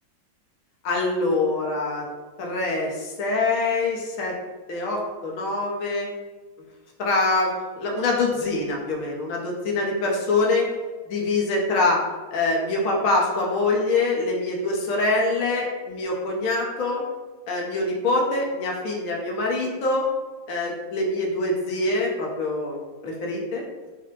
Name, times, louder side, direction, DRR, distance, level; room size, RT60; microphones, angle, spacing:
voice 1, 0.8-2.0 2.4-4.3 4.7-6.1 7.0-10.6 11.1-12.0 12.3-17.0 17.5-20.0 20.5-23.6, left 2 dB, 55° left, -2 dB, 1.0 m, -24 dB
5.7 x 2.1 x 3.2 m, 1.3 s
omnidirectional pair, 2.1 m